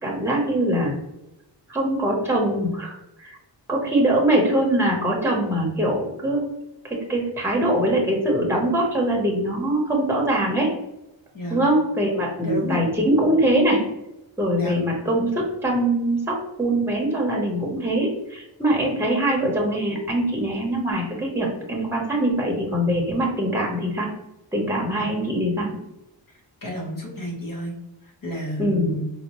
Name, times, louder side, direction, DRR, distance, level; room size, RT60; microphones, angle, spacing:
voice 1, 0.0-1.0 1.7-3.4 3.7-6.4 6.8-10.7 11.5-13.8 14.4-24.1 24.5-25.7 28.6-28.9, right 1 dB, 5° right, -1 dB, 0.9 m, -22 dB
voice 2, 12.4-12.9 14.5-14.9 25.0-25.1 26.6-27.7 28.2-29.1, equal, 50° left, -1 dB, 1.1 m, -30 dB
4.1 x 2.1 x 3.0 m, 0.90 s
wide cardioid pair, 115°, 44 cm